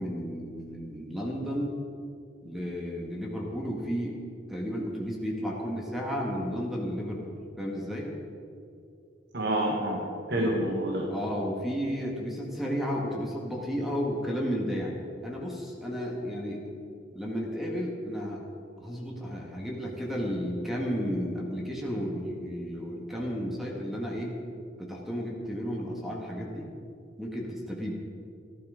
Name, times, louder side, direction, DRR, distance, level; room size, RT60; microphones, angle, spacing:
voice 1, 0.0-1.7 2.4-4.2 4.5-8.1 10.3-10.6 11.1-14.9 15.2-16.7 17.1-18.4 18.8-24.4 24.8-26.7 27.2-27.9, equal, ahead, -2 dB, 1.8 m, -33 dB
voice 2, 9.3-10.0 10.3-11.1, right 1 dB, 65° right, -1 dB, 1.5 m, -27 dB
14.5 x 11.5 x 5.1 m, 2.5 s
head